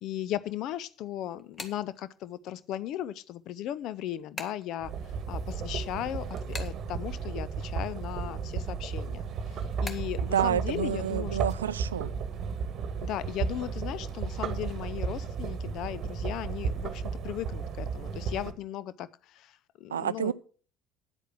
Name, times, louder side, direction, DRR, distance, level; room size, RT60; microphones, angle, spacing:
voice 1, 0.0-4.9 5.3-11.4 13.0-20.3, left 12 dB, 55° left, 0.5 m, -37 dB
sound 1, 0.7-2.6 3.0-7.7 7.9-10.3, left 3 dB, 30° left, 1.5 m, -45 dB
sound 2, 4.8-18.5, right 5 dB, 45° right, 1.2 m, -34 dB
voice 2, 10.3-12.1 19.9-20.3, right 9 dB, 80° right, 0.4 m, -29 dB
9.9 x 8.2 x 6.1 m
figure-of-eight pair, 60°, 0 cm